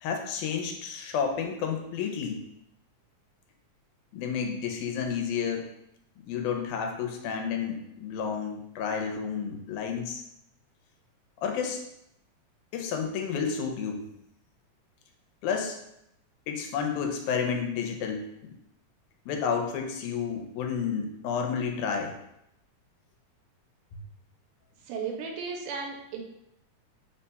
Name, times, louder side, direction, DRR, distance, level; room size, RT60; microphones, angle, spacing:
voice 1, 0.0-2.4 4.1-5.7 6.3-10.2 11.4-11.8 12.7-14.0 15.4-15.8 16.5-18.3 19.3-22.2, left 6 dB, 85° left, 3 dB, 2.1 m, -31 dB
voice 2, 24.8-26.2, right 5 dB, 90° right, 2 dB, 2.1 m, -35 dB
4.9 x 2.2 x 4.1 m, 0.79 s
omnidirectional pair, 3.5 m